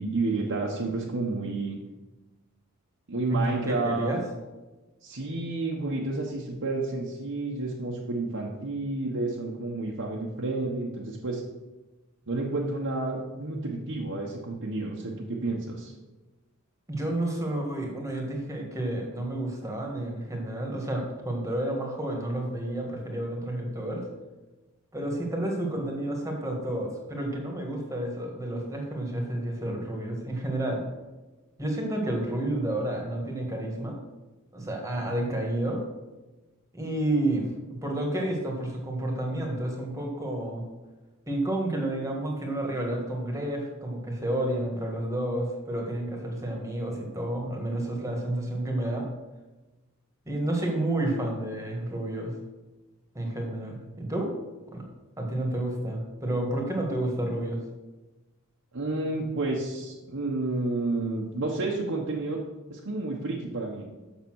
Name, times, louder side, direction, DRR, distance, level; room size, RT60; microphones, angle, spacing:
voice 1, 0.0-1.8 3.1-4.1 5.0-11.4 12.3-15.9 58.7-62.4 62.7-63.8, right 2 dB, 60° right, -3 dB, 1.1 m, -30 dB
voice 2, 3.3-4.2 16.9-24.0 24.9-30.8 31.6-34.0 34.5-35.8 36.7-40.7 41.3-49.1 50.3-52.3 53.1-54.3 54.7-54.8 55.2-57.6, right 1 dB, 15° right, 1 dB, 1.7 m, -30 dB
7.1 x 6.7 x 6.3 m, 1.1 s
head